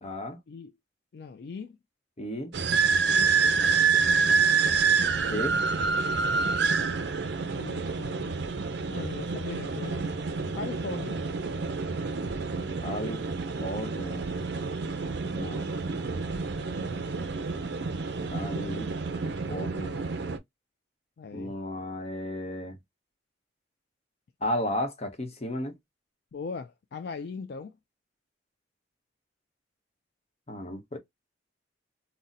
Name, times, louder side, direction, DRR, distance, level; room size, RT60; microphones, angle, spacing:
voice 1, 0.0-0.4 2.2-2.5 5.1-5.6 12.8-13.2 13.6-14.3 15.4-15.7 18.3-18.9 19.5-20.0 21.3-22.8 24.4-25.7 30.5-31.0, left 1 dB, 35° left, 0.8 m, -34 dB
voice 2, 1.1-1.8 7.5-8.4 8.9-10.1 10.5-11.2 21.2-21.6 26.3-27.7, left 4 dB, 60° left, 0.3 m, -39 dB
sound 1, 2.5-20.4, right 5 dB, 60° right, 0.5 m, -28 dB
4.0 x 2.1 x 2.4 m
head